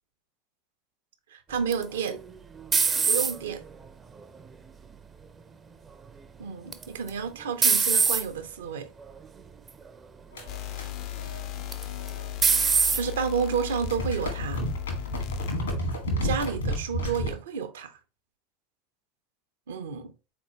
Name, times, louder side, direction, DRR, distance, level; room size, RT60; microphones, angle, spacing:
voice 1, 1.3-2.2 2.9-3.6 6.4-8.9 12.7-14.6 16.2-17.9 19.7-20.1, right 6 dB, 70° right, 0.6 m, -31 dB
sound 1, 1.7-3.6 4.2-4.7 6.7-7.1 7.6-8.2 9.0-9.3 9.7-9.8 11.7-12.1 12.4-13.0, right 5 dB, 25° right, 0.4 m, -23 dB
sound 2, 10.3-13.0 13.3-17.4, equal, 75° left, 1.4 m, -33 dB
sound 3, 10.5-15.6, left 14 dB, 50° left, 0.4 m, -36 dB
4.1 x 3.5 x 2.9 m
figure-of-eight pair, 75°, 0 cm